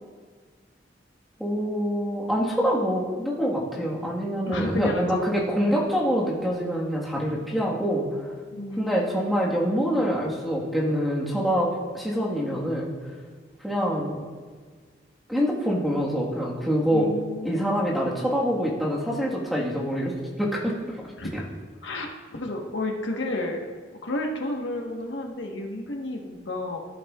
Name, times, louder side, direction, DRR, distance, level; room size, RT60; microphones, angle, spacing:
voice 1, 1.4-8.3 8.8-12.9 13.6-14.2 15.3-17.1 17.4-21.0 21.3-21.4, equal, ahead, -4 dB, 1.4 m, -25 dB
voice 2, 4.5-5.8 8.5-9.1 16.9-17.7 21.2-21.5 21.8-22.1 22.3-23.6 24.0-26.8, left 2 dB, 90° left, 1 dB, 1.2 m, -31 dB
14.0 x 8.3 x 2.4 m, 1.5 s
head